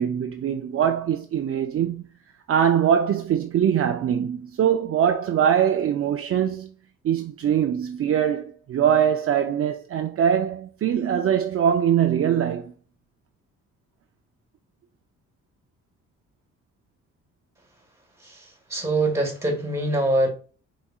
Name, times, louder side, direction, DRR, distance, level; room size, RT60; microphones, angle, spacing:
voice 1, 0.0-2.0 2.5-6.7 7.0-12.7, right 9 dB, 50° right, 0.5 m, -22 dB
voice 2, 18.2-20.3, right 1 dB, 10° right, 2.1 m, -24 dB
4.8 x 4.1 x 2.3 m
cardioid pair, 90°, 30 cm